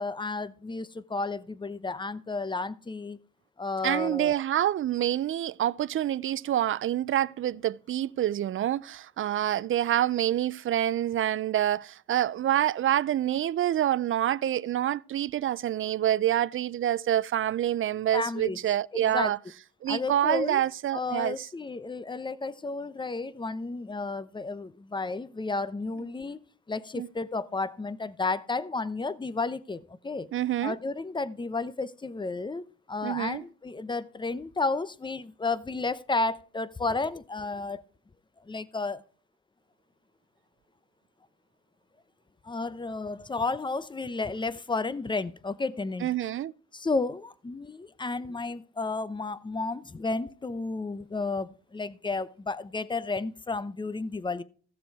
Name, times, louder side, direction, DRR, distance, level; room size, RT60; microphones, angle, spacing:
voice 1, 0.0-3.2 3.6-4.4 18.1-18.6 18.9-19.3 19.9-20.6 20.9-26.4 26.7-30.3 30.6-37.8 38.5-39.0 42.4-46.1 46.7-54.4, left 3 dB, 15° left, 0.7 m, -32 dB
voice 2, 3.8-19.4 19.8-21.5 27.0-27.1 30.3-30.8 33.0-33.4 46.0-46.5, right 12 dB, 45° right, 0.4 m, -27 dB
15.0 x 6.7 x 4.7 m
cardioid pair, 90°, 30 cm